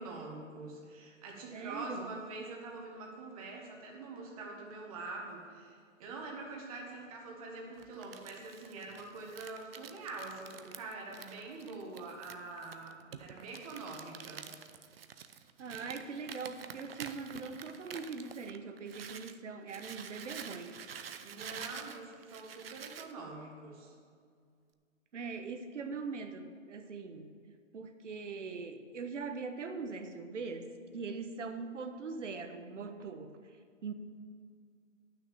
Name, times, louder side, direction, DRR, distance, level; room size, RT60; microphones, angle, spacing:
voice 1, 0.0-14.5 21.2-23.9, right 3 dB, 25° right, 0 dB, 1.5 m, -45 dB
voice 2, 1.5-2.1 15.6-20.8 25.1-27.3 27.7-33.6 33.8-33.9, right 4 dB, 65° right, 7 dB, 1.2 m, -41 dB
Crumpling crinkling, 7.8-19.4 19.7-23.1, right 7 dB, 50° right, 0.6 m, -48 dB
10.0 x 6.2 x 7.4 m, 2.1 s
hypercardioid pair, 155°, 39 cm